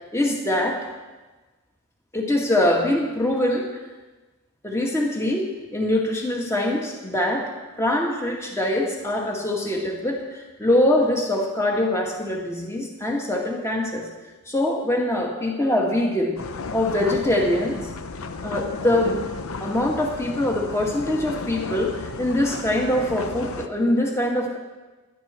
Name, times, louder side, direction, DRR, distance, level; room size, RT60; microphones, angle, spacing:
voice 1, 0.1-0.8 2.1-3.8 4.6-7.5 7.8-14.1 14.5-16.4 16.7-17.8 18.4-19.2 19.6-24.6, left 1 dB, 15° left, 0 dB, 2.0 m, -23 dB
sound 1, 16.4-23.7, left 4 dB, 70° left, 0.8 m, -34 dB
16.5 x 12.0 x 4.5 m, 1.2 s
head